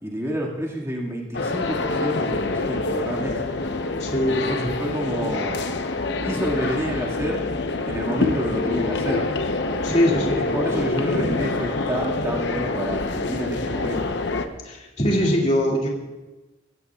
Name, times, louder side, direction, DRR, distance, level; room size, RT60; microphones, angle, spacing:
voice 1, 0.0-3.4 4.3-5.7 6.2-7.4 7.8-9.3 10.1-14.2 15.1-15.5, equal, 15° right, -3 dB, 2.0 m, -29 dB
sound 1, 1.3-14.5, left 3 dB, 60° left, 0.9 m, -26 dB
voice 2, 4.0-4.7 9.8-11.0 14.6-15.9, equal, 35° left, -3 dB, 2.4 m, -23 dB
23.0 x 15.5 x 2.4 m, 1.1 s
head